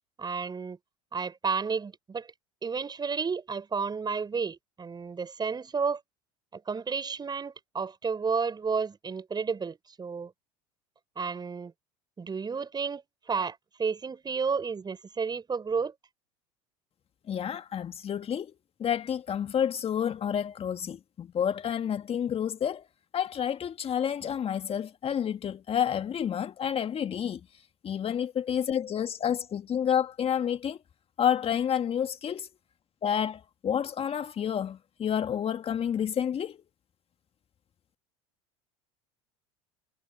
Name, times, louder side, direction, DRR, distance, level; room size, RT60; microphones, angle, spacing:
voice 1, 0.2-0.8 1.1-2.3 2.6-6.0 6.5-10.3 11.2-11.7 12.2-15.9, right 5 dB, 25° right, 6.4 m, -32 dB
voice 2, 17.3-18.5 18.8-22.9 23.1-27.4 27.8-30.8 31.2-32.5 33.0-36.6, left 9 dB, 30° left, 1.8 m, -29 dB
hypercardioid pair, 75°, 18 cm